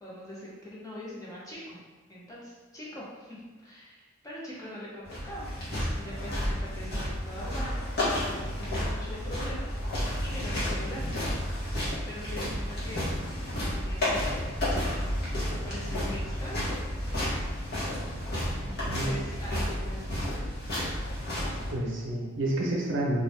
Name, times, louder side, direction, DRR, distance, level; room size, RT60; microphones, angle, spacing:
voice 1, 0.0-1.8 2.1-5.5 6.0-7.8 8.1-11.1 12.1-13.0 13.5-14.4 15.6-16.7 18.6-20.5, left 1 dB, 15° left, -6 dB, 0.6 m, -42 dB
sound 1, 5.0-21.7, left 1 dB, 50° left, 1.0 m, -31 dB
voice 2, 18.6-19.3 21.7-23.2, right 1 dB, 65° right, -2 dB, 0.6 m, -30 dB
2.5 x 2.3 x 3.3 m, 1.3 s
head